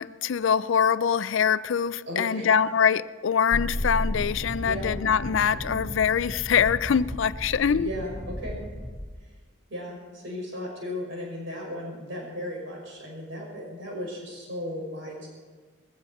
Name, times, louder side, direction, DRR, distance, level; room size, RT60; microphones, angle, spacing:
voice 1, 0.0-7.9, left 7 dB, 70° left, 0.4 m, -24 dB
voice 2, 2.1-2.5 4.6-4.9 7.6-8.6 9.7-15.3, left 1 dB, 70° right, 5.8 m, -35 dB
sound 1, 3.5-5.9, left 1 dB, 45° left, 0.9 m, -32 dB
sound 2, 3.7-9.1, left 1 dB, 10° right, 2.0 m, -36 dB
20.5 x 15.0 x 4.4 m
head